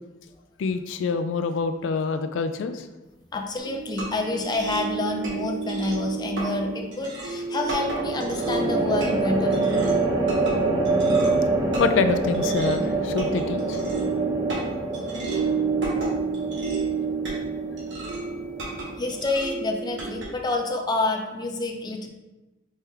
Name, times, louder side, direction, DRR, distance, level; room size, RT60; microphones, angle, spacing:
voice 1, 0.6-2.9 11.8-13.8, left 5 dB, 85° left, 9 dB, 0.3 m, -26 dB
voice 2, 3.3-9.6 19.0-22.1, left 2 dB, 25° left, 2 dB, 0.5 m, -28 dB
sound 1, 3.6-20.3, right 4 dB, 80° right, 1.3 m, -31 dB
sound 2, 4.7-5.3 7.9-19.2, right 3 dB, 20° right, 0.6 m, -26 dB
4.2 x 3.4 x 3.6 m, 1.1 s
head